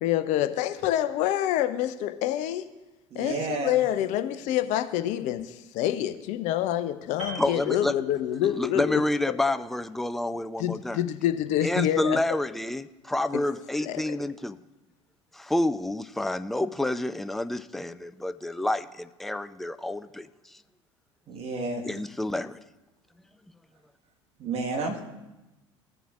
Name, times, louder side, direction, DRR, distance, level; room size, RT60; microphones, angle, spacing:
voice 1, 0.0-2.6 3.1-9.0 10.6-12.2 13.8-14.1, left 12 dB, 50° left, 10 dB, 0.6 m, -27 dB
voice 2, 3.1-3.8 21.3-21.8 24.4-25.0, right 3 dB, 40° right, 2 dB, 1.5 m, -31 dB
Piano, 7.2-8.6 8.9-9.2, right 1 dB, 85° right, 2.7 m, -41 dB
voice 3, 7.4-7.9 8.4-11.0 11.6-14.6 15.3-20.3 21.8-22.6, left 1 dB, ahead, 13 dB, 0.3 m, -29 dB
16.0 x 7.0 x 2.4 m, 1.0 s
figure-of-eight pair, 65°, 16 cm